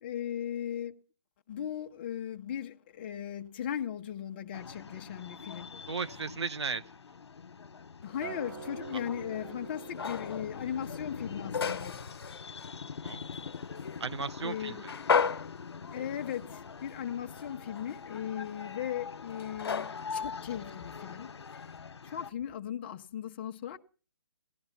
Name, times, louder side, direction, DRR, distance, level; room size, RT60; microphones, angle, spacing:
voice 1, 0.0-1.0 1.5-5.7 8.0-12.0 14.4-14.8 15.9-21.7 22.0-23.8, left 9 dB, 25° left, 0.8 m, -38 dB
sound 1, 4.5-22.3, left 5 dB, 80° left, 1.1 m, -44 dB
voice 2, 5.9-6.8 13.0-13.2 14.0-14.9, right 5 dB, 85° right, 1.0 m, -35 dB
sound 2, 8.0-21.8, left 6 dB, 60° left, 1.2 m, -38 dB
Acoustic guitar, 8.2-12.6 13.0-13.4, right 5 dB, 40° right, 6.3 m, -47 dB
18.0 x 12.5 x 5.9 m
hypercardioid pair, 165°, 14 cm